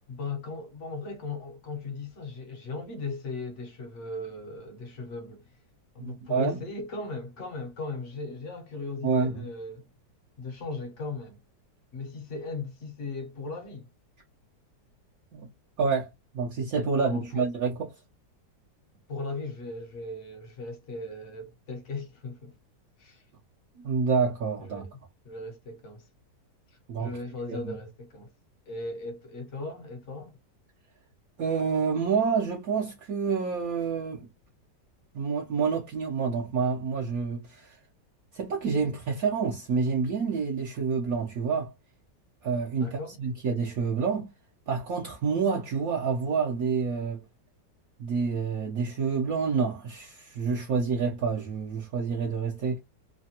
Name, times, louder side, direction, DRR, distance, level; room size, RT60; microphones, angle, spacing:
voice 1, 0.1-5.4 5.9-9.9 10.4-11.4 11.9-13.9 17.0-17.5 19.1-22.6 23.0-23.2 24.6-24.9 25.2-26.0 27.0-28.3 28.7-30.4 42.8-43.2, left 3 dB, 50° left, 1.0 m, -37 dB
voice 2, 6.0-6.6 9.0-9.5 15.3-15.5 15.8-16.1 16.3-18.0 23.8-24.9 26.9-27.2 27.5-27.7 31.4-34.3 35.1-37.8 38.3-41.7 42.4-44.3 44.7-47.2 48.0-52.8, right 5 dB, 65° right, 1.1 m, -28 dB
3.3 x 2.2 x 2.7 m
omnidirectional pair, 1.9 m